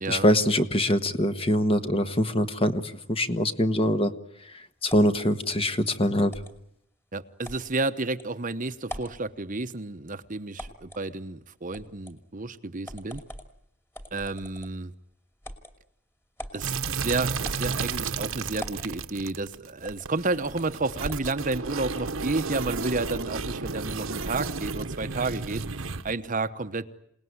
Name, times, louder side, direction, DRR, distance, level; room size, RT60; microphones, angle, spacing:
voice 1, 0.1-2.8 3.1-4.1 4.8-6.3, left 1 dB, 25° left, 9 dB, 1.4 m, -23 dB
sound 1, 4.9-5.3 6.3-6.6 7.4-7.7 8.2-8.3 8.8-9.2 10.6-11.0 11.7-12.2 12.8-13.5 13.9-14.8 15.4-15.7 16.4-16.6 17.4-18.0 18.6-18.9 19.8-20.1 20.4-20.7 21.1-21.3 21.9-22.6, equal, 10° left, 2.6 m, -42 dB
voice 2, 7.1-13.2 14.1-14.9 16.5-26.9, right 3 dB, 40° right, 10 dB, 1.0 m, -31 dB
sound 2, 16.6-26.1, right 4 dB, 70° right, 1.3 m, -32 dB
28.0 x 19.0 x 9.6 m, 0.76 s
head